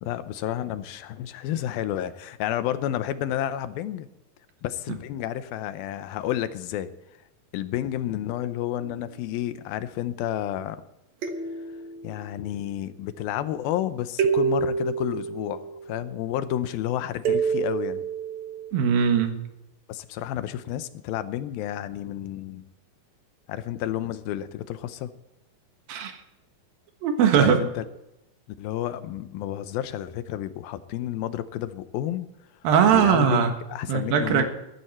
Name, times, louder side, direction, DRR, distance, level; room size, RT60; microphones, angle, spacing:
voice 1, 0.0-4.1 4.6-6.9 7.5-10.8 12.0-18.1 19.9-22.6 23.5-25.1 27.4-27.9 28.6-32.3 32.8-34.5, left 12 dB, 85° left, 12 dB, 2.6 m, -30 dB
sound 1, 8.8-9.4 11.2-12.5 14.2-16.2 17.2-18.7, right 6 dB, 60° right, 2.2 m, -28 dB
voice 2, 18.7-19.4 25.9-26.2 27.0-27.6 32.6-33.5 33.9-34.5, right 7 dB, 75° right, 6 dB, 3.3 m, -20 dB
14.5 x 14.0 x 4.4 m, 0.89 s
omnidirectional pair, 4.2 m